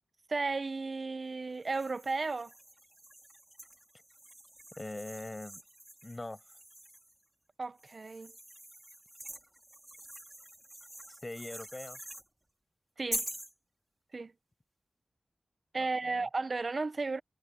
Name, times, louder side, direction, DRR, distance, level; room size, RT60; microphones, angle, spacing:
voice 1, 0.3-2.5 7.6-8.3 13.0-13.3 14.1-14.3 15.7-17.2, right 3 dB, 45° right, 0.5 m, -34 dB
Metal Pipes Scratch Clank Loud Abrasive Crash Great Hall, 1.6-7.2 7.8-12.3 13.1-13.5, right 1 dB, 15° right, 3.1 m, -45 dB
voice 2, 4.8-5.6 6.0-6.4 11.1-12.0 15.8-16.3, left 2 dB, 25° left, 5.6 m, -42 dB
wide cardioid pair, 115°, 0 cm